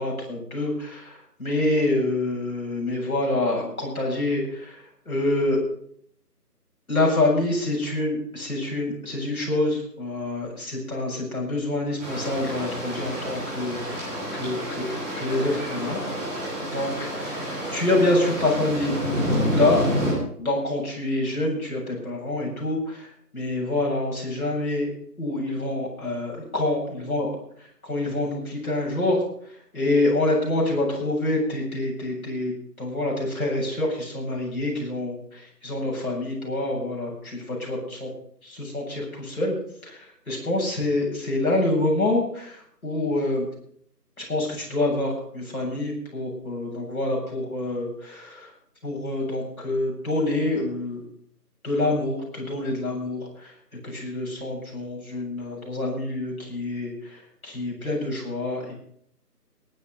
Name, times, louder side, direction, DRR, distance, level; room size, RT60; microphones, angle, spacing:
voice 1, 0.0-5.6 6.9-14.9 15.2-16.0 16.4-19.0 19.5-19.8 20.4-23.1 23.3-24.9 25.2-27.3 27.8-29.2 29.7-32.5 32.8-38.1 38.4-39.5 39.8-43.5 44.2-48.5 48.8-51.0 51.6-53.5 53.8-58.7, left 2 dB, 60° left, -3 dB, 7.9 m, -26 dB
sound 1, 12.0-20.1, equal, 5° right, 4.2 m, -29 dB
19.0 x 9.8 x 5.3 m, 0.64 s
figure-of-eight pair, 175°, 48 cm